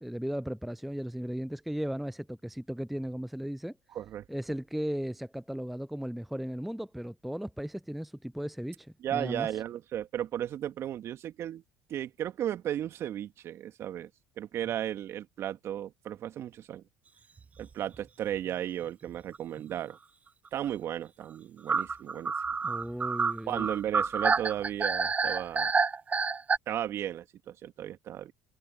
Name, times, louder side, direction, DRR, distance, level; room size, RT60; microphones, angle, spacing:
voice 1, 0.0-3.8 4.3-9.5 22.6-23.7, equal, ahead, 0.5 m, -36 dB
voice 2, 3.9-4.2 9.0-11.6 11.9-14.1 14.4-16.8 17.6-20.0 20.5-22.3 23.5-25.7 26.7-28.3, right 11 dB, 50° right, 2.2 m, -35 dB
sound 1, 17.4-17.7 17.9-18.0 18.3-18.4 19.3-19.6 21.7-26.6, right 5 dB, 25° right, 0.9 m, -28 dB
hypercardioid pair, 70°, 6 cm